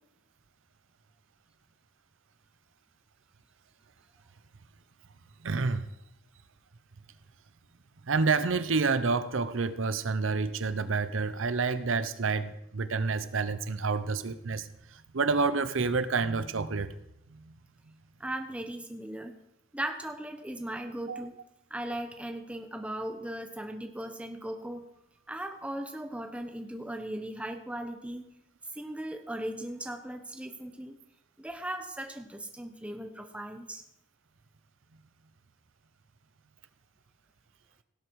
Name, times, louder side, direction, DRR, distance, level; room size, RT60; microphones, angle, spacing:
voice 1, 5.4-5.9 8.0-16.9 17.3-17.5 21.1-21.3, right 4 dB, 75° right, 13 dB, 0.7 m, -29 dB
voice 2, 18.2-19.4 19.7-21.3 21.7-24.9 25.3-28.3 28.7-30.9 31.4-33.8, right 1 dB, 5° right, 6 dB, 1.0 m, -38 dB
17.5 x 8.0 x 4.7 m, 0.84 s
head